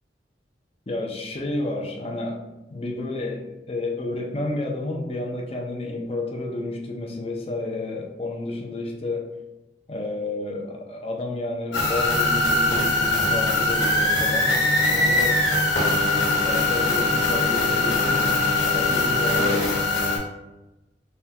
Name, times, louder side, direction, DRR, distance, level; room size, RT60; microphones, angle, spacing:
voice 1, 0.9-2.4 2.7-9.3 9.9-14.6 14.9-15.6 15.9-19.9, left 2 dB, 35° left, 0 dB, 0.6 m, -31 dB
sound 1, 11.7-20.2, left 2 dB, 85° left, 1.4 m, -21 dB
4.3 x 2.3 x 3.3 m, 1.0 s
head